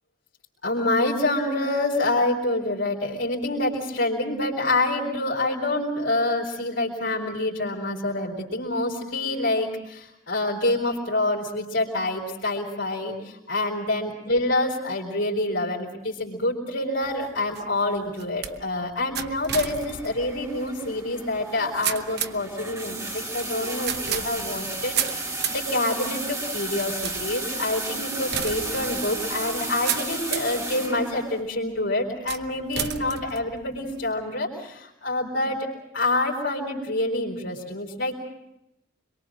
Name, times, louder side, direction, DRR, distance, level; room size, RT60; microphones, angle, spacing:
voice 1, 0.6-35.7 35.9-38.2, left 2 dB, 65° left, -3 dB, 4.2 m, -27 dB
sound 1, 17.0-30.6 31.2-31.7 32.3-34.1, right 9 dB, 50° right, 1.0 m, -34 dB
sound 2, 19.6-31.4, right 2 dB, 15° right, 2.5 m, -33 dB
26.0 x 23.0 x 6.3 m, 0.87 s
head